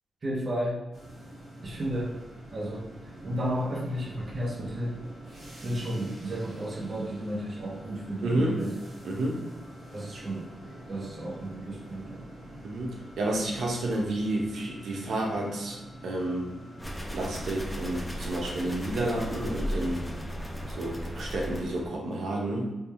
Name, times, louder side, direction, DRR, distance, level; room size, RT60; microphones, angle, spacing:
voice 1, 0.2-0.8 1.6-2.2 2.5-2.9 3.2-5.0 5.6-8.8 9.9-10.5 10.9-12.3, right 1 dB, 40° right, -2 dB, 0.7 m, -33 dB
sound 1, 0.9-17.0, right 1 dB, 70° right, 1.3 m, -46 dB
voice 2, 8.2-8.7 9.0-9.4 12.6-16.5 17.1-20.1 20.7-22.7, right 1 dB, 90° right, -1 dB, 0.8 m, -30 dB
sound 2, 16.8-21.9, equal, ahead, 0.5 m, -35 dB
3.5 x 2.3 x 4.1 m, 1.1 s
wide cardioid pair, 170°, 0 cm